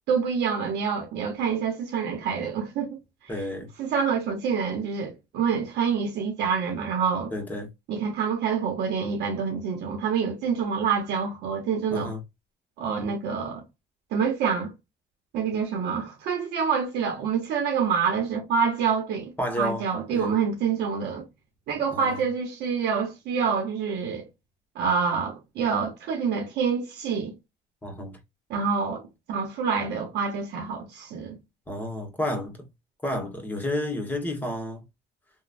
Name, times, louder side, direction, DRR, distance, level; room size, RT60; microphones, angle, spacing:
voice 1, 0.1-3.0 3.8-7.3 7.9-12.1 12.8-13.6 14.1-14.7 15.3-21.2 21.7-24.3 24.7-27.3 28.5-31.4, right 6 dB, 75° right, 0.8 m, -27 dB
voice 2, 3.3-3.7 7.3-7.7 11.9-12.2 19.4-19.8 20.1-20.3 21.9-22.2 27.8-28.2 31.7-32.7 33.0-34.8, left 1 dB, 10° left, 1.3 m, -31 dB
3.0 x 2.2 x 2.5 m
cardioid pair, 110°, 17 cm